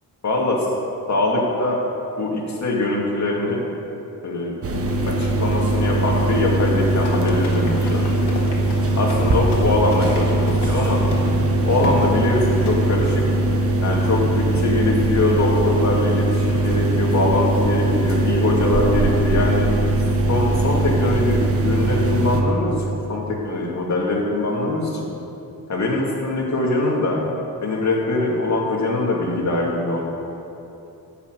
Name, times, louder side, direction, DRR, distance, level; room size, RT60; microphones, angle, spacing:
voice 1, 0.2-0.6 1.1-1.8 2.2-3.6 4.2-4.6 5.1-8.3 9.0-11.1 11.7-13.3 13.8-19.7 20.3-25.1 25.7-27.2 27.6-30.0, left 2 dB, 45° left, -2 dB, 2.3 m, -22 dB
sound 1, 4.6-22.4, right 2 dB, 35° right, 1.1 m, -20 dB
Run, 6.8-10.7 11.1-11.3 11.8-12.1 12.6-12.8, left 2 dB, 90° left, 1.8 m, -32 dB
11.5 x 6.0 x 7.7 m, 2.8 s
cardioid pair, 110°, 39 cm